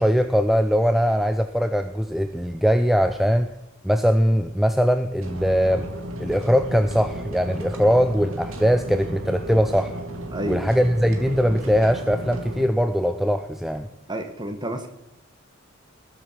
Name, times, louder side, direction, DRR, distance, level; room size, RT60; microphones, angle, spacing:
voice 1, 0.0-3.5 3.8-5.9 6.2-10.0 10.5-13.9, equal, ahead, 8 dB, 0.5 m, -21 dB
sound 1, 5.2-12.6, right 1 dB, 85° right, 2.2 m, -34 dB
voice 2, 10.3-10.6 14.1-14.9, right 1 dB, 20° right, 6 dB, 1.7 m, -30 dB
20.0 x 7.8 x 5.9 m, 0.88 s
head